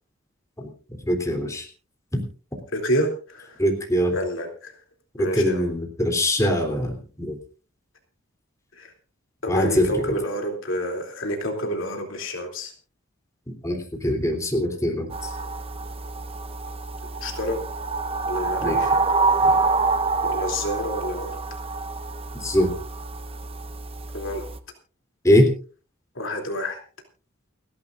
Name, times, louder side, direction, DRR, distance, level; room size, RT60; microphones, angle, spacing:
voice 1, 1.1-1.6 3.6-4.1 5.2-7.4 9.5-9.9 13.6-15.1 18.6-18.8 22.4-22.7 25.2-25.5, left 1 dB, 15° left, 3 dB, 3.3 m, -22 dB
voice 2, 2.7-3.6 4.1-4.8 5.2-5.7 8.7-8.9 9.4-12.7 17.2-17.6 18.3-19.0 19.3-19.6 20.2-21.3 24.1-24.4 26.1-26.8, equal, 70° left, 3 dB, 2.9 m, -28 dB
sound 1, 15.1-24.6, right 3 dB, 30° right, 0.9 m, -26 dB
29.5 x 11.0 x 2.5 m, 0.37 s
head